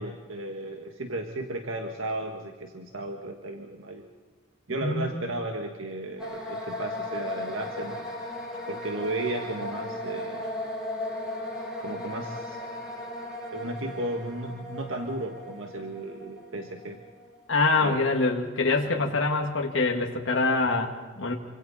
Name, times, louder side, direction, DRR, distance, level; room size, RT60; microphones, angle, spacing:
voice 1, 0.0-4.0 4.7-8.0 8.7-10.5 11.8-12.6 13.5-17.0 17.8-18.0 18.8-19.1, right 2 dB, 80° right, 3 dB, 1.7 m, -34 dB
sound 1, 6.2-18.1, left 1 dB, 5° right, 6.9 m, -37 dB
voice 2, 17.5-21.3, left 3 dB, 70° left, 1 dB, 2.1 m, -25 dB
27.0 x 25.5 x 4.3 m, 1.4 s
head